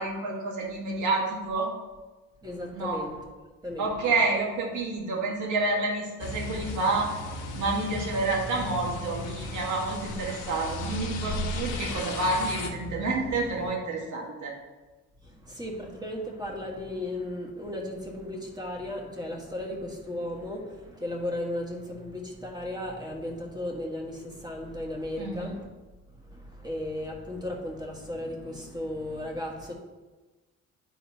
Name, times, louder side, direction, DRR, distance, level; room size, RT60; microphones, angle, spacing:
voice 1, 0.0-1.7 2.7-3.0 3.8-7.1 7.5-14.5 25.2-25.5, right 3 dB, 75° right, -2 dB, 1.7 m, -29 dB
voice 2, 2.4-3.2 3.6-4.1 15.2-25.7 26.2-29.7, left 1 dB, 15° right, -1 dB, 1.6 m, -35 dB
sound 1, 6.2-12.7, left 3 dB, 90° left, 0.9 m, -37 dB
sound 2, 8.5-13.7, equal, 65° left, 0.9 m, -38 dB
10.0 x 4.0 x 2.9 m, 1.2 s
cardioid pair, 90°, 30 cm